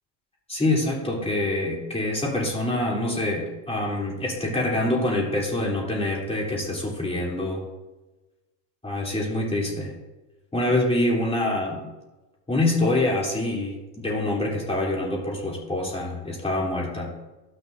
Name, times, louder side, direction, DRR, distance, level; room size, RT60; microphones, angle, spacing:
voice 1, 0.5-7.6 8.8-9.9 10.5-11.8 12.5-17.1, left 1 dB, 10° left, -3 dB, 3.2 m, -25 dB
16.0 x 6.5 x 2.6 m, 1.1 s
hypercardioid pair, 95°, 49 cm